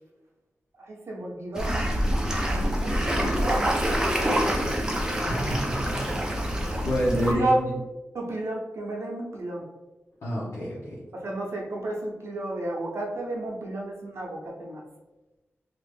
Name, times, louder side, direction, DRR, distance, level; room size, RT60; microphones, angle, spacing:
voice 1, 0.8-1.8 2.5-4.8 5.9-6.6 7.3-7.6 8.1-9.6 11.1-14.8, right 1 dB, 75° right, -2 dB, 0.8 m, -32 dB
sound 1, 1.5-7.3, equal, 15° right, 0.6 m, -26 dB
voice 2, 5.2-6.2 6.8-7.7 10.2-11.0, equal, 85° left, -10 dB, 1.0 m, -28 dB
3.0 x 2.4 x 3.4 m, 1.1 s
wide cardioid pair, 110°, 5 cm